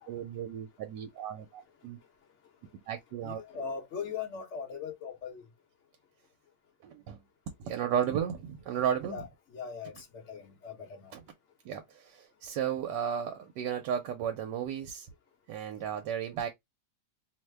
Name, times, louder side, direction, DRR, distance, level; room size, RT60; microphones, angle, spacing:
voice 1, 0.1-2.0 2.9-3.4 6.8-7.2 7.6-9.2 11.1-11.2 11.6-15.1 15.5-16.5, right 9 dB, 85° right, 1.3 m, -34 dB
voice 2, 3.2-5.4 9.1-9.3 9.5-11.1 15.8-15.9, left 6 dB, 55° left, 0.9 m, -40 dB
3.1 x 2.1 x 3.2 m
omnidirectional pair, 1.9 m